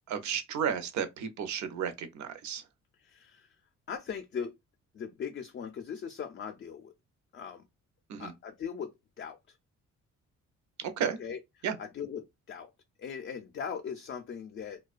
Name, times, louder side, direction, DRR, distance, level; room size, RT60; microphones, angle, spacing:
voice 1, 0.1-2.7 8.1-8.3 10.8-11.2 11.6-11.8, right 8 dB, 70° right, 0.6 m, -33 dB
voice 2, 3.0-3.6 3.9-4.5 4.9-6.9 7.3-7.6 8.2-9.6 11.2-11.4 11.8-12.7 13.0-14.8, left 7 dB, 40° left, 0.4 m, -39 dB
2.3 x 2.2 x 2.4 m
cardioid pair, 90°, 30 cm